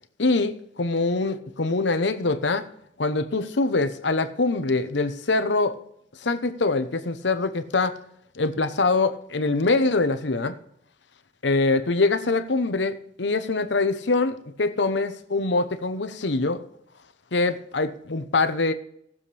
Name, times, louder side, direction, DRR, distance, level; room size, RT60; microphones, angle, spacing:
voice 1, 0.2-2.7 3.0-5.8 6.2-8.0 8.4-10.5 11.4-16.6 17.3-18.7, left 3 dB, 75° left, 0.9 m, -24 dB
18.0 x 7.3 x 3.4 m
head